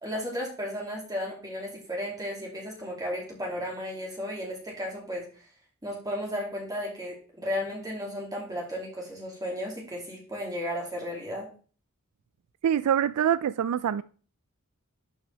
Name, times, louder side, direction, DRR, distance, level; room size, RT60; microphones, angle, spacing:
voice 1, 0.0-5.4 5.8-11.5, equal, 15° right, 2.5 m, -34 dB
voice 2, 12.6-14.0, right 9 dB, 90° right, 0.3 m, -25 dB
11.0 x 6.3 x 3.4 m
head